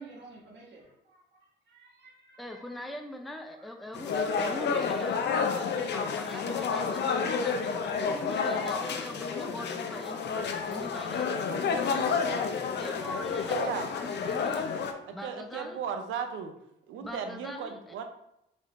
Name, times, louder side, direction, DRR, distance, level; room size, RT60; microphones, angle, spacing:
voice 1, 0.0-2.8 3.5-3.7 6.3-6.7, right 3 dB, 60° right, -2 dB, 1.4 m, -52 dB
voice 2, 2.4-7.6 7.9-10.4 10.7-12.2 12.8-13.6 14.0-14.7 15.1-15.8 17.0-18.0, left 1 dB, ahead, 4 dB, 0.5 m, -42 dB
sound 1, 3.9-14.9, left 5 dB, 60° left, 0.6 m, -30 dB
voice 3, 13.5-13.9 15.1-16.5 16.9-18.0, right 7 dB, 80° right, 6 dB, 0.7 m, -36 dB
5.1 x 3.6 x 2.5 m, 0.82 s
cardioid pair, 90°, 20 cm